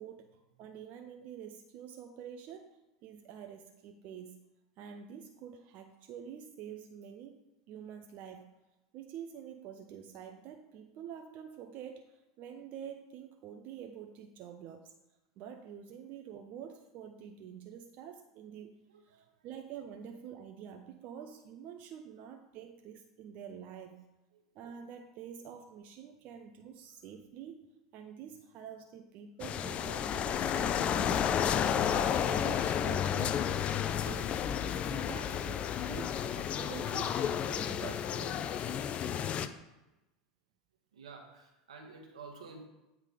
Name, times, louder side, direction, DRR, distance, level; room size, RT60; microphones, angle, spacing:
voice 1, 0.0-4.4 4.8-8.5 8.9-14.9 15.4-24.0 24.5-27.7 27.9-33.8 34.0-37.2 37.5-38.4, right 8 dB, 50° right, 5 dB, 0.6 m, -47 dB
voice 2, 18.9-19.2 24.3-24.4 40.9-42.7, right 4 dB, 85° right, 3 dB, 1.3 m, -50 dB
sound 1, 29.4-39.5, left 9 dB, 40° left, 0.4 m, -32 dB
8.2 x 3.7 x 4.8 m, 0.98 s
hypercardioid pair, 95°, 3 cm